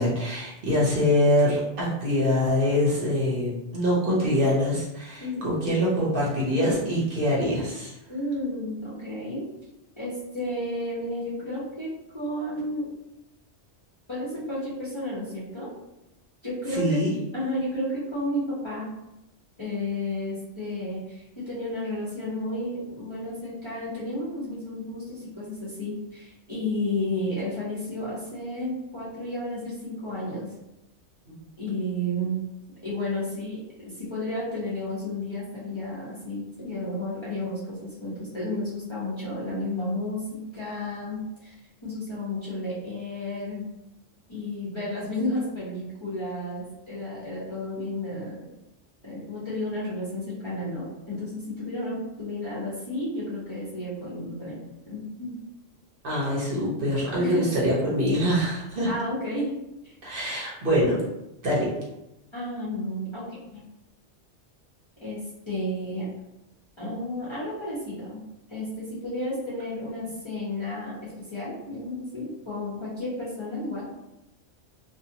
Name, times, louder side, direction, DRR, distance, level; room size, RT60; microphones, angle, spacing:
voice 1, 0.0-7.9 16.7-17.1 56.0-58.9 60.0-61.0 61.4-61.7, equal, 55° right, -5 dB, 0.9 m, -24 dB
voice 2, 5.2-5.6 8.1-9.5 10.0-12.9 14.1-15.7 16.4-17.0 17.3-18.9 19.6-30.5 31.6-32.4 32.8-43.7 44.3-48.5 49.0-54.6 54.9-55.4 57.2-57.7 58.8-59.5 59.8-59.9 62.3-63.2 63.5-63.6 65.0-66.1 66.8-68.2 68.5-74.0, left 1 dB, 30° left, -8 dB, 0.7 m, -32 dB
2.6 x 2.4 x 2.8 m, 0.91 s
omnidirectional pair, 1.2 m